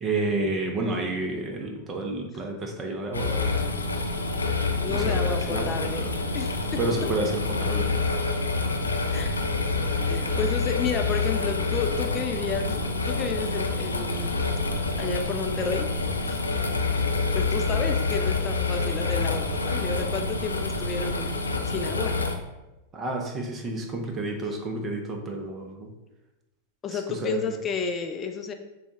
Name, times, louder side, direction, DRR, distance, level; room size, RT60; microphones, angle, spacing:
voice 1, 0.0-3.7 4.9-5.7 6.8-8.0 22.9-25.9 26.9-27.5, right 2 dB, 25° right, 2 dB, 0.8 m, -30 dB
sound 1, 3.1-22.4, left 3 dB, 80° left, 0.4 m, -27 dB
voice 2, 4.8-6.5 7.0-7.1 9.1-9.4 10.1-14.5 15.0-15.9 16.2-16.4 17.3-21.3 21.7-22.1 26.8-28.5, left 5 dB, 25° left, 4 dB, 0.5 m, -31 dB
6.7 x 2.3 x 2.9 m, 1.0 s
figure-of-eight pair, 90°, 0 cm